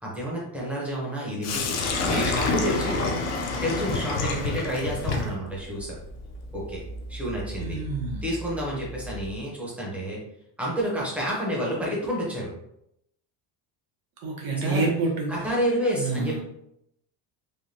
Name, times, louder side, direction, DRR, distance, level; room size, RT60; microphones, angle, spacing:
voice 1, 0.0-3.1 3.6-6.0 6.5-6.8 7.1-7.8 8.2-10.2 10.6-12.5 14.6-14.9 15.3-16.4, equal, 5° right, -5 dB, 0.7 m, -29 dB
Sink (filling or washing), 1.4-9.3, left 3 dB, 40° left, 0.4 m, -29 dB
voice 2, 7.6-8.2 14.2-15.4 15.9-16.4, right 3 dB, 60° right, 0 dB, 0.9 m, -27 dB
3.4 x 2.2 x 2.6 m, 0.78 s
cardioid pair, 160°, 40 cm